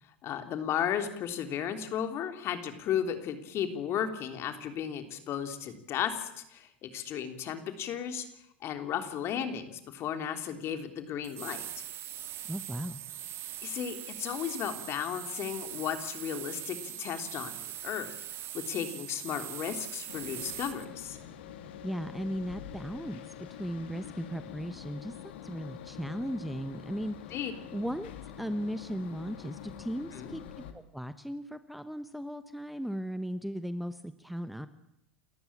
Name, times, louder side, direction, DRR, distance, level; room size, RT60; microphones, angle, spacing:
voice 1, 0.2-8.2 8.6-11.7 13.6-18.1 18.5-21.2 27.3-27.5 30.1-30.3, left 9 dB, 45° left, 8 dB, 3.4 m, -34 dB
sound 1, 11.2-20.8, right 11 dB, 45° right, 2.1 m, -41 dB
voice 2, 12.5-13.0 21.8-27.3 27.7-28.1 28.4-34.7, equal, ahead, 12 dB, 1.2 m, -37 dB
sound 2, 20.1-30.7, left 9 dB, 70° left, 2.4 m, -46 dB
29.0 x 14.0 x 8.7 m, 0.79 s
hypercardioid pair, 85°, 6 cm